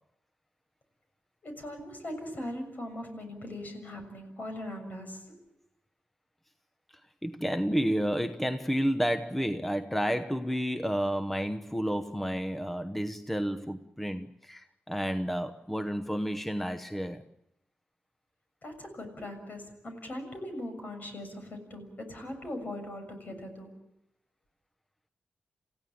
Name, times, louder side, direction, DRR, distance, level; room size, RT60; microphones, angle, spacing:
voice 1, 1.4-5.4 18.6-23.7, left 1 dB, 50° left, 6.8 m, -40 dB
voice 2, 7.2-17.2, equal, 5° left, 1.0 m, -31 dB
28.5 x 16.0 x 8.6 m
wide cardioid pair, 95°, 4 cm